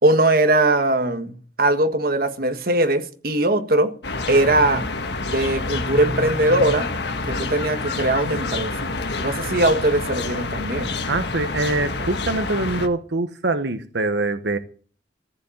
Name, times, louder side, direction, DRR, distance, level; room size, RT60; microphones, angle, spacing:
voice 1, 0.0-3.9 4.3-4.9 5.2-6.9 7.3-8.9 9.2-10.9, right 1 dB, 55° right, 1.6 m, -20 dB
sound 1, 4.0-12.9, left 3 dB, 75° left, 1.5 m, -27 dB
voice 2, 11.1-14.6, right 2 dB, 85° right, 1.0 m, -24 dB
14.5 x 10.5 x 7.2 m
head